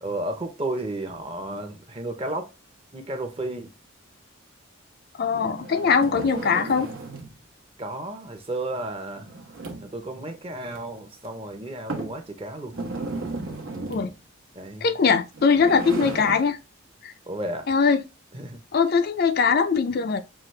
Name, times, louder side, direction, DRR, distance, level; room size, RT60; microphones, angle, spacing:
voice 1, 0.0-2.5 2.9-3.7 7.8-9.3 9.8-12.8 14.5-14.9 16.0-16.1 17.3-17.7 18.3-18.6, right 1 dB, 25° right, 0.7 m, -33 dB
voice 2, 5.1-6.9 13.9-14.1 14.8-16.6 17.0-17.1 17.7-18.0 18.7-20.2, left 5 dB, 45° left, 0.4 m, -21 dB
sound 1, 5.2-7.4 9.2-10.0 10.7-10.8 11.2-11.3 11.9-12.2 12.7-14.2 15.2-16.5, right 3 dB, 75° right, 1.0 m, -34 dB
5.8 x 2.4 x 3.1 m
head